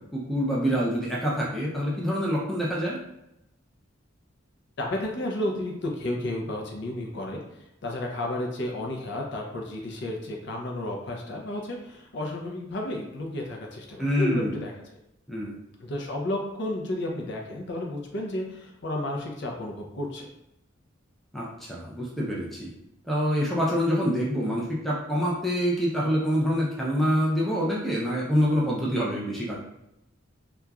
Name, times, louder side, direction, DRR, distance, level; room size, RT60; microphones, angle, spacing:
voice 1, 0.1-3.0 14.0-14.6 15.3-15.6 21.3-22.7 23.1-29.6, equal, ahead, -5 dB, 0.5 m, -26 dB
voice 2, 4.8-14.7 15.8-20.3, left 1 dB, 55° left, 0 dB, 0.5 m, -32 dB
2.9 x 2.3 x 2.3 m, 0.84 s
head